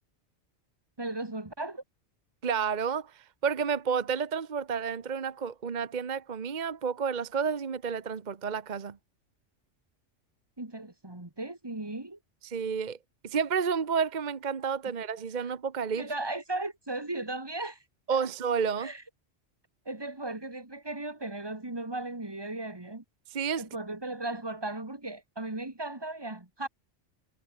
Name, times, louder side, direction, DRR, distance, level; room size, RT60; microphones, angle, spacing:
voice 1, 1.0-1.8 10.6-12.2 16.0-17.8 18.8-19.0 19.9-23.0 23.6-26.7, right 2 dB, 20° right, 2.5 m, -36 dB
voice 2, 2.4-9.0 12.4-13.0 13.2-16.0 18.1-18.9 23.3-23.6, right 6 dB, 40° right, 1.1 m, -30 dB
omnidirectional pair, 1.2 m